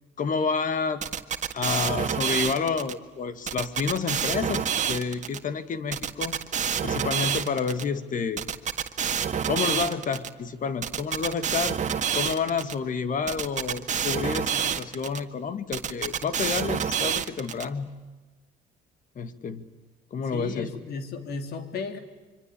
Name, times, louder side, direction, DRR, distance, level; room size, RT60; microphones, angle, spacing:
voice 1, 0.2-1.0 1.5-6.4 6.8-8.4 9.5-11.8 12.1-17.9 19.2-19.6 20.1-20.8, left 5 dB, 50° left, 12 dB, 2.3 m, -29 dB
sound 1, 1.0-2.9 3.5-5.4 5.9-7.8 8.4-10.3 10.8-12.7 13.3-15.2 15.7-17.6, right 8 dB, 45° right, 1.8 m, -28 dB
voice 2, 20.3-22.0, left 4 dB, 70° left, 8 dB, 3.6 m, -34 dB
25.5 x 25.0 x 8.6 m, 1.2 s
supercardioid pair, 80°, 17 cm